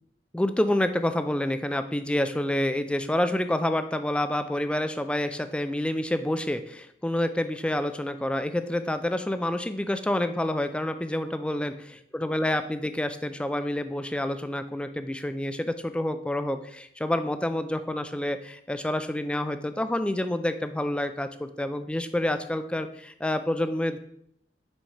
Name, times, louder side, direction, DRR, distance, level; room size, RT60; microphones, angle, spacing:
voice 1, 0.3-24.0, left 1 dB, 5° left, 9 dB, 0.3 m, -28 dB
6.4 x 4.7 x 4.1 m, 0.71 s
head